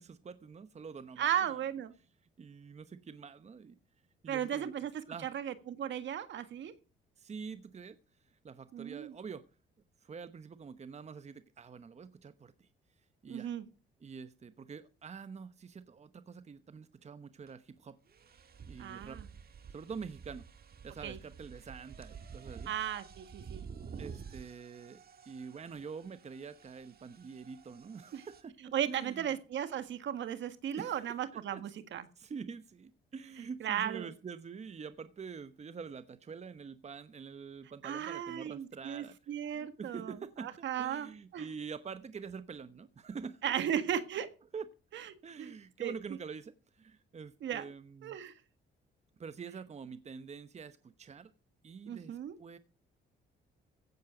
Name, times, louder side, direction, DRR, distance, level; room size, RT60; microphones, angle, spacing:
voice 1, 0.0-1.3 2.4-3.8 4.2-4.7 5.1-5.3 7.2-8.0 8.4-9.4 10.0-12.7 13.2-13.5 14.0-18.0 18.7-19.2 19.7-20.4 20.8-22.7 24.0-28.6 28.9-29.3 30.8-31.1 31.5-31.6 32.2-43.6 44.5-44.7 45.2-48.2 49.2-51.3 51.6-52.6, right 5 dB, 35° right, 1.0 m, -46 dB
voice 2, 1.2-1.9 4.3-6.7 8.7-9.1 13.3-13.6 18.8-19.2 21.0-21.2 22.7-23.6 28.1-28.2 28.7-32.1 33.4-34.1 37.8-41.5 43.4-44.3 44.9-45.9 47.4-47.7 48.0-48.3 51.9-52.3, right 9 dB, 70° right, 1.6 m, -36 dB
sound 1, 17.5-17.6 18.1-28.4, right 6 dB, 50° right, 1.7 m, -50 dB
16.0 x 8.5 x 5.0 m
cardioid pair, 90°, 20 cm